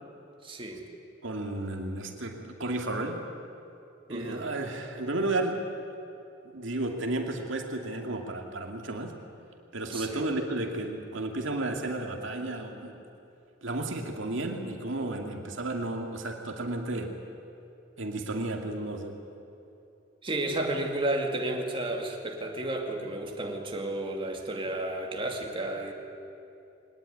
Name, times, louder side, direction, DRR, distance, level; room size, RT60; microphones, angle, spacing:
voice 1, 0.4-0.8 4.1-4.5 9.9-10.3 20.2-25.9, right 1 dB, 25° right, 1 dB, 2.4 m, -32 dB
voice 2, 1.2-3.2 4.1-5.7 6.5-9.2 9.7-13.0 13.6-17.2 18.0-19.2, right 2 dB, 70° right, 3 dB, 2.4 m, -33 dB
23.0 x 18.5 x 9.8 m, 2.7 s
head